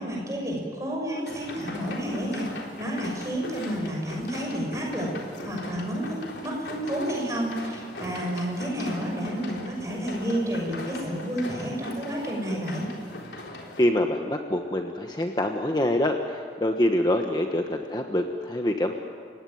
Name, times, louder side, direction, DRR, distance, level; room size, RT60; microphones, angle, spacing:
voice 1, 0.0-5.1 5.4-12.9, equal, 20° right, -1 dB, 6.7 m, -30 dB
sound 1, 1.3-13.9, left 2 dB, 85° left, 3.8 m, -40 dB
voice 2, 13.8-18.9, left 1 dB, 25° left, 4 dB, 1.2 m, -25 dB
30.0 x 17.0 x 9.4 m, 2.2 s
head